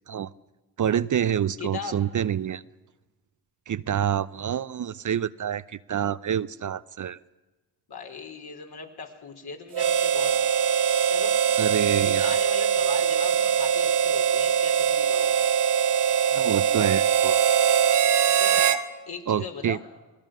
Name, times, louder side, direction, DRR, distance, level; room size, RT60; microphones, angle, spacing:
voice 1, 0.8-2.6 3.7-7.2 11.6-12.4 16.3-17.4 19.3-19.8, right 9 dB, 45° right, 16 dB, 0.7 m, -27 dB
voice 2, 1.6-2.0 7.9-10.3 11.0-11.4 11.9-15.3 18.4-18.7 19.1-19.8, left 5 dB, 55° left, 3 dB, 4.5 m, -39 dB
Harmonica, 9.7-18.8, right 8 dB, 65° right, 1.6 m, -22 dB
27.0 x 19.5 x 6.4 m, 1.2 s
hypercardioid pair, 50°, 44 cm